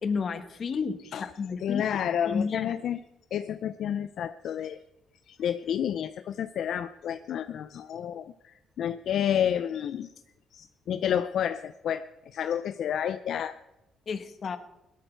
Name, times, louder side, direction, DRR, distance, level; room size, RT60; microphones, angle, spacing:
voice 1, 0.0-1.8 2.2-2.7 14.1-14.6, left 5 dB, 50° left, 10 dB, 1.3 m, -31 dB
voice 2, 1.6-3.0 3.3-4.8 5.3-10.1 10.5-13.6, left 9 dB, 70° left, 12 dB, 0.5 m, -30 dB
17.5 x 12.5 x 4.5 m, 0.94 s
cardioid pair, 90°, 0 cm